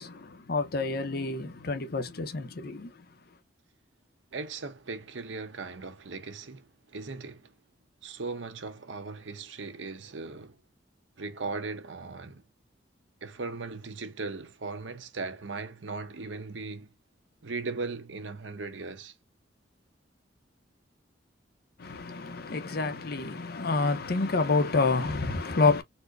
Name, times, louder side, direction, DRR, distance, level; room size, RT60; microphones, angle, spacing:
voice 1, 0.0-3.0 21.8-25.8, left 3 dB, 55° left, 0.7 m, -28 dB
voice 2, 4.3-7.5 8.0-10.6 11.2-12.4 13.2-16.9 17.4-19.1, right 3 dB, 90° right, 0.9 m, -38 dB
4.3 x 2.1 x 2.6 m
head